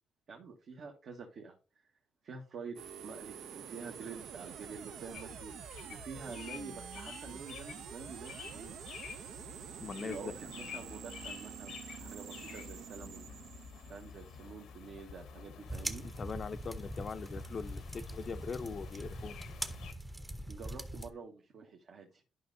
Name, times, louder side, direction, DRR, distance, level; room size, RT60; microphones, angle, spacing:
voice 1, 0.3-1.6 2.2-2.8 3.0-5.5 5.9-8.8 10.0-13.2 13.9-16.0 20.5-22.2, right 5 dB, 65° right, 1.2 m, -47 dB
sound 1, 2.8-14.7, right 8 dB, 80° right, 0.4 m, -48 dB
sound 2, 5.1-19.9, left 7 dB, 80° left, 0.8 m, -50 dB
voice 2, 9.8-10.3 16.0-19.4, left 5 dB, 45° left, 0.5 m, -41 dB
sound 3, 15.7-21.1, right 1 dB, 10° right, 0.7 m, -42 dB
11.0 x 5.3 x 2.6 m
cardioid pair, 90°, 0 cm